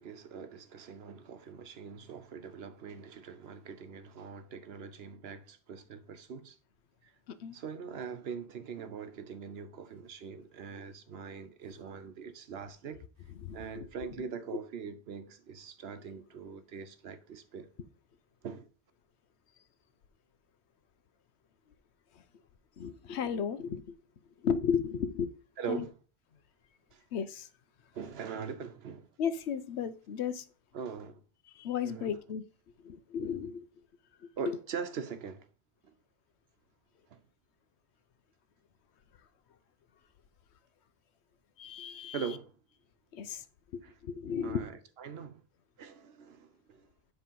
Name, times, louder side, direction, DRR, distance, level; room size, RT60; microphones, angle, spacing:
voice 1, 0.0-6.6 7.0-7.1 7.5-13.0 13.5-17.7 18.4-18.7 25.6-26.0 26.9-27.0 27.9-29.1 30.7-31.2 31.8-32.2 34.4-35.5 37.1-37.2 42.1-42.5 43.8-43.9 44.4-45.4 45.8-46.9, right 6 dB, 70° right, 1.0 m, -42 dB
voice 2, 13.4-13.8 22.8-23.9 24.4-25.3 25.7-25.8 27.1-27.5 29.2-30.4 31.6-32.4 32.8-33.7 34.5-34.6 41.6-42.2 43.1-43.4 43.7-44.6, left 7 dB, 80° left, 0.9 m, -34 dB
9.9 x 3.4 x 5.3 m
omnidirectional pair, 1.1 m